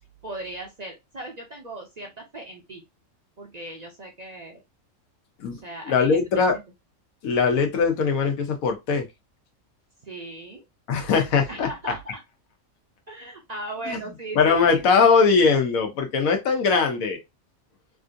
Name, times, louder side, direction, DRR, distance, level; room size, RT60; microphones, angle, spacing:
voice 1, 0.2-2.8 3.4-4.6 5.5-6.6 10.0-10.6 11.5-12.2 13.1-14.8, right 2 dB, 45° right, 0.6 m, -38 dB
voice 2, 5.9-6.5 7.2-9.1 10.9-11.7 13.9-14.0 14.3-17.2, left 5 dB, 90° left, 1.3 m, -20 dB
3.5 x 2.5 x 2.5 m
omnidirectional pair, 1.4 m